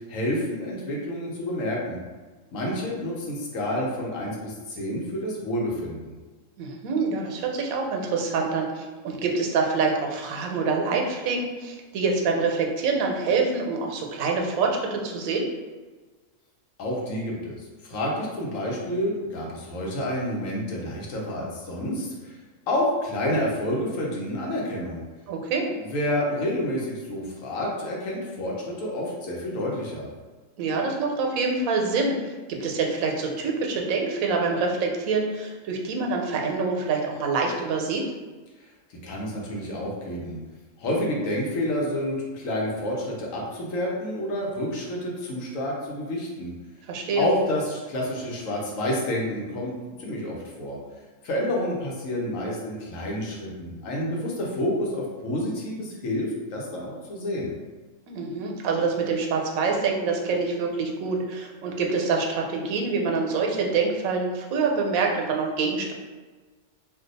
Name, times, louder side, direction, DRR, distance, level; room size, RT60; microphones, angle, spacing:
voice 1, 0.1-2.0 2.5-6.1 16.8-22.3 22.7-25.0 25.8-30.1 39.0-40.4 40.8-46.5 47.2-49.7 50.0-50.8 51.2-57.5, left 1 dB, 75° left, -3 dB, 1.1 m, -29 dB
voice 2, 6.6-15.5 25.3-25.7 30.6-38.0 46.9-47.3 58.1-65.9, right 4 dB, 90° right, 2 dB, 1.0 m, -26 dB
2.7 x 2.2 x 3.9 m, 1.3 s
omnidirectional pair, 1.4 m